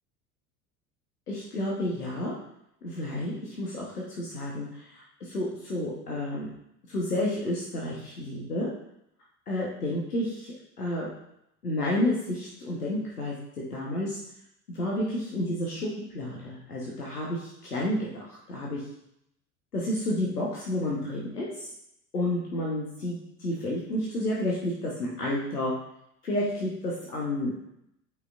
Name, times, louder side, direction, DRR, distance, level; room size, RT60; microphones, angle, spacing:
voice 1, 1.3-2.3 2.8-3.8 4.2-6.5 6.9-8.7 9.5-11.1 11.6-13.4 13.7-14.2 14.7-18.8 19.7-21.7 22.1-25.7 26.2-27.6, left 1 dB, 80° left, -4 dB, 1.3 m, -30 dB
7.8 x 5.5 x 2.5 m, 0.78 s
figure-of-eight pair, 75°, 46 cm